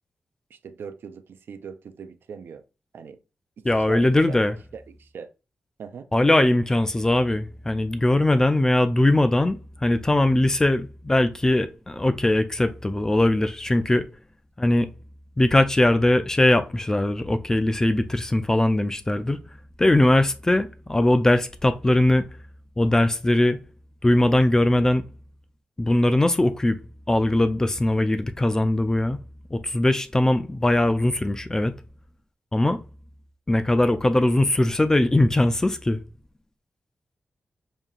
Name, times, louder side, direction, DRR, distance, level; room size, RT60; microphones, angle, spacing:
voice 1, 0.5-2.6 2.9-3.2 3.6-4.4 4.7-5.3 5.8-6.1, right 6 dB, 85° right, 0.4 m, -40 dB
voice 2, 3.6-4.6 6.1-14.1 14.6-14.9 15.4-19.4 19.8-22.3 22.8-23.6 24.0-25.0 25.8-26.8 27.1-29.2 29.5-31.7 32.5-32.8 33.5-36.0, left 1 dB, 15° left, 0.3 m, -20 dB
5.3 x 2.7 x 2.3 m
wide cardioid pair, 155°, 4 cm